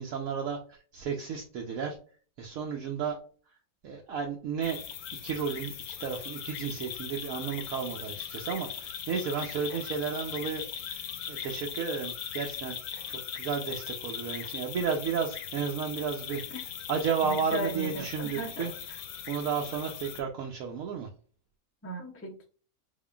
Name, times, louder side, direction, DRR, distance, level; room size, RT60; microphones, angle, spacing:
voice 1, 0.0-2.0 2.4-3.2 3.8-4.8 5.2-12.8 13.1-19.0 19.3-21.1, right 6 dB, 75° right, 1 dB, 1.1 m, -33 dB
sound 1, 4.6-20.2, left 8 dB, 80° left, 1.1 m, -39 dB
voice 2, 17.2-18.6 21.8-22.5, right 1 dB, 15° left, 3 dB, 0.4 m, -36 dB
4.0 x 3.7 x 2.3 m, 0.40 s
omnidirectional pair, 1.6 m